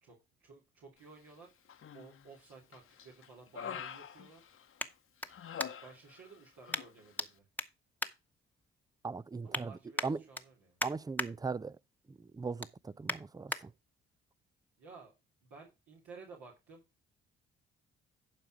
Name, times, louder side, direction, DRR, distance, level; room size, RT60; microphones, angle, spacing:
voice 1, 0.0-1.6 1.9-4.5 5.8-7.5 9.4-10.8 14.8-15.1 15.4-16.8, right 4 dB, 70° right, 2.9 m, -54 dB
Human voice, 1.7-2.3 2.7-4.9 5.3-6.4 6.6-6.9, left 8 dB, 45° left, 1.0 m, -45 dB
sound 1, 2.2-6.1 6.7-7.3 7.5-8.9 9.2-9.6 9.9-11.3 11.7-12.0 12.3-13.6 14.2-14.3, left 1 dB, 5° left, 1.1 m, -40 dB
voice 2, 9.0-9.7 10.0-10.2 10.8-11.8 12.1-13.7, right 4 dB, 15° right, 0.4 m, -39 dB
11.5 x 4.7 x 4.9 m
hypercardioid pair, 45°, 29 cm